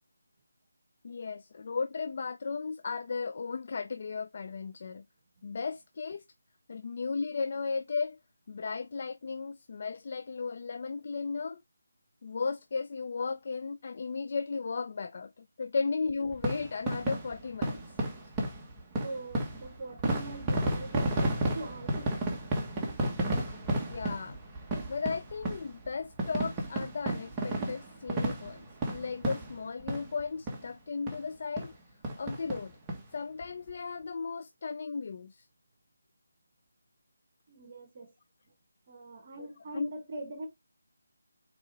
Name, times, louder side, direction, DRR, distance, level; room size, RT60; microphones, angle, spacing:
voice 1, 1.0-5.0 5.4-6.2 6.7-8.2 8.5-11.6 12.2-17.8 23.8-24.4 24.9-31.7 32.2-32.8 33.1-35.4 39.4-39.5 39.7-39.9, left 4 dB, 45° left, 0.5 m, -35 dB
sound 1, 16.3-30.2 30.5-30.6 31.1-31.2 31.6-31.7 32.0-33.0 33.4-33.5 33.7-33.8, right 1 dB, 10° right, 1.4 m, -33 dB
voice 2, 19.0-22.4 37.5-38.1 38.9-40.5, right 2 dB, 40° right, 1.5 m, -42 dB
6.5 x 4.3 x 3.6 m
figure-of-eight pair, 165°, 0 cm